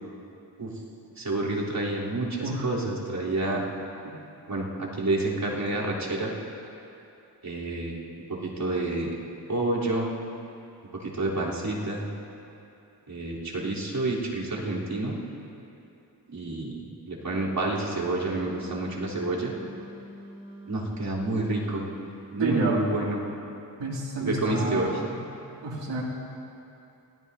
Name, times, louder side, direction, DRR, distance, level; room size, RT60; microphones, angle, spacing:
voice 1, 1.2-3.6 4.5-6.3 7.4-8.0 8.3-9.1 9.5-10.1 11.0-12.1 13.1-15.2 16.3-19.5 20.7-21.9 22.3-23.2 24.2-25.0, right 2 dB, 55° right, -6 dB, 3.6 m, -29 dB
Wind instrument woodwind instrument, 17.5-22.2, equal, 15° right, 3.3 m, -45 dB
voice 2, 22.4-22.8 23.8-25.2 25.6-26.0, right 2 dB, 85° right, -3 dB, 2.5 m, -30 dB
25.5 x 17.5 x 2.7 m, 2.8 s
wide cardioid pair, 85°, 42 cm